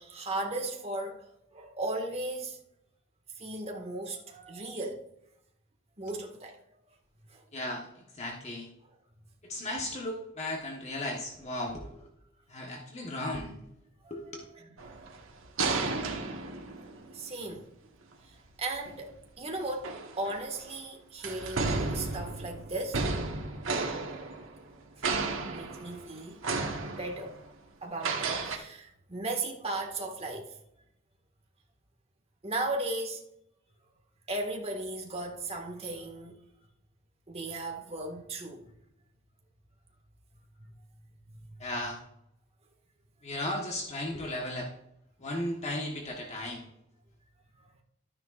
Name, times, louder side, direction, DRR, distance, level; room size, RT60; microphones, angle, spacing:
voice 1, 0.0-2.6 3.4-5.1 6.0-6.6 7.3-7.4 14.0-14.9 17.1-17.7 18.2-23.0 25.0-25.1 25.5-26.4 27.0-27.5 27.8-30.5 32.4-33.2 34.3-36.4 37.3-38.7 40.6-40.7, right 2 dB, 30° right, 1.7 m, -36 dB
voice 2, 7.5-7.9 8.2-8.7 9.5-12.1 12.5-13.6 14.1-14.4 41.6-42.0 43.2-44.7 45.2-46.7, left 1 dB, 35° left, 1.2 m, -35 dB
sound 1, 14.8-17.3 18.8-18.9 19.7-20.7 21.2-24.8 25.0-26.1 26.4-27.4 28.0-28.6, right 3 dB, 90° right, 1.3 m, -33 dB
12.5 x 9.6 x 2.5 m
head